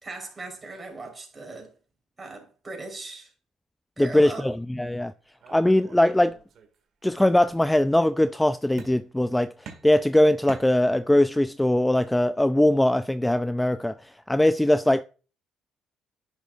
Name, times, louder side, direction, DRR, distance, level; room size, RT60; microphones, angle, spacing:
voice 1, 0.0-1.7 2.2-3.3 4.0-4.5, right 3 dB, 30° right, 3.7 m, -39 dB
voice 2, 4.0-5.1 5.5-6.4 7.0-9.5 9.8-13.9 14.3-15.0, left 1 dB, 10° left, 0.4 m, -21 dB
sound 1, 5.4-6.8 7.1-7.8 8.8-9.3 9.6-11.2, right 6 dB, 60° right, 1.9 m, -47 dB
10.0 x 6.5 x 2.4 m
supercardioid pair, 70°, 0 cm